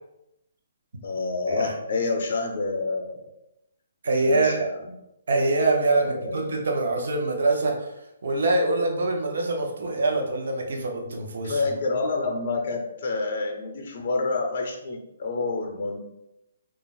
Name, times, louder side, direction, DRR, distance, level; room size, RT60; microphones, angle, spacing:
voice 1, 1.0-3.3 4.2-4.9 6.0-6.6 11.4-16.0, left 3 dB, 50° left, 2 dB, 0.5 m, -28 dB
voice 2, 4.0-4.6 5.3-7.9 8.2-11.6, right 2 dB, 70° right, 1 dB, 0.6 m, -24 dB
2.3 x 2.0 x 3.8 m, 0.87 s
hypercardioid pair, 160°, 0 cm